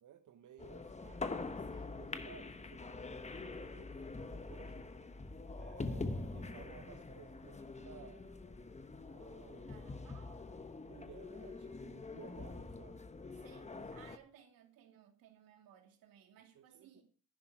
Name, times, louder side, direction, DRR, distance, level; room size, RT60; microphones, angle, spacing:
voice 1, 0.0-1.0 1.9-4.9 5.5-8.3 9.0-9.8 10.8-13.0 13.7-14.1 16.5-17.0, right 9 dB, 60° right, 1.0 m, -58 dB
sound 1, 0.6-14.2, left 3 dB, 20° left, 1.1 m, -45 dB
voice 2, 1.0-2.0 9.7-10.4 13.4-17.0, right 9 dB, 85° right, 2.7 m, -62 dB
11.0 x 11.0 x 4.7 m
cardioid pair, 95°, 34 cm